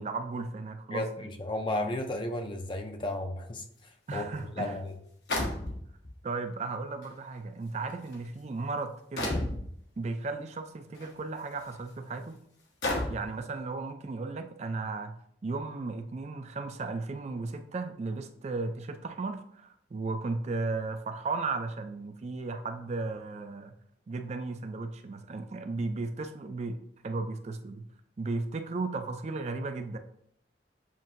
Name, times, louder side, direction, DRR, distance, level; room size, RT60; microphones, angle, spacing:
voice 1, 0.0-1.3 4.1-4.8 6.2-9.3 10.0-12.4 13.1-15.1 15.4-23.8 24.1-26.8 27.0-27.8 28.2-30.0, right 3 dB, 40° right, 7 dB, 0.3 m, -35 dB
voice 2, 0.9-3.6 4.1-4.2 4.6-4.9, left 1 dB, 25° left, 5 dB, 0.5 m, -33 dB
sound 1, 4.2-4.3 5.3-6.1 7.0-7.1 7.9-8.1 9.2-9.6 10.9-11.1 11.7-11.8 12.8-13.3, left 1 dB, 70° left, 1.0 m, -31 dB
7.2 x 2.6 x 2.6 m, 0.68 s
head